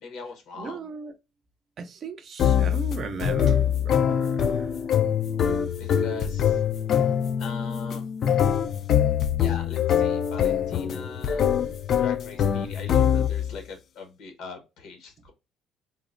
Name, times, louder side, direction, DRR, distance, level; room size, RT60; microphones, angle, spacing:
voice 1, 0.0-0.9 5.8-6.6 7.4-8.0 9.4-15.3, left 4 dB, 75° left, 1.0 m, -41 dB
voice 2, 0.6-1.1 1.8-4.7, right 4 dB, 55° right, 0.5 m, -36 dB
sound 1, 2.4-13.6, left 9 dB, 60° left, 0.3 m, -24 dB
3.7 x 2.1 x 2.4 m
cardioid pair, 85°, 0 cm